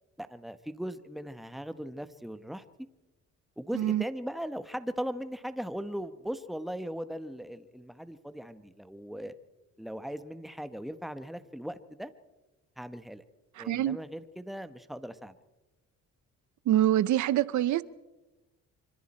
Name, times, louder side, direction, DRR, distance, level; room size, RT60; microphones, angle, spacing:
voice 1, 0.2-2.6 3.6-9.3 9.8-12.1 12.8-13.2 13.6-15.3, equal, ahead, 1.3 m, -38 dB
voice 2, 3.7-4.0 13.6-14.0 16.7-17.8, right 12 dB, 75° right, 0.7 m, -25 dB
25.5 x 25.0 x 4.4 m
cardioid pair, 90°, 30 cm